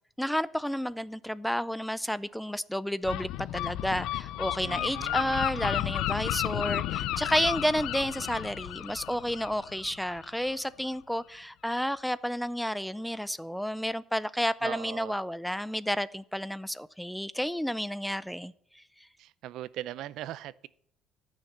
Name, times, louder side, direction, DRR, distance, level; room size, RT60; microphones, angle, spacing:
voice 1, 0.2-18.8, equal, ahead, 0.4 m, -31 dB
Gull seagull, 3.0-10.5, left 14 dB, 85° left, 0.5 m, -33 dB
voice 2, 4.6-5.5 14.6-15.1 19.2-20.7, right 13 dB, 70° right, 0.5 m, -40 dB
14.0 x 6.5 x 7.3 m
cardioid pair, 160°, 0 cm